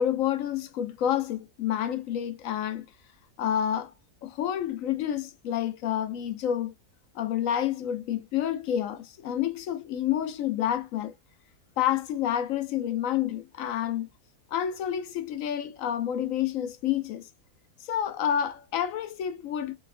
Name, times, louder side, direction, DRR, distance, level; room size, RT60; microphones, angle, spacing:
voice 1, 0.0-2.8 3.4-3.9 4.2-6.7 7.1-11.1 11.8-14.1 14.5-17.3 17.8-19.8, left 10 dB, 70° left, 0.9 m, -29 dB
3.8 x 3.4 x 2.5 m
omnidirectional pair, 1.7 m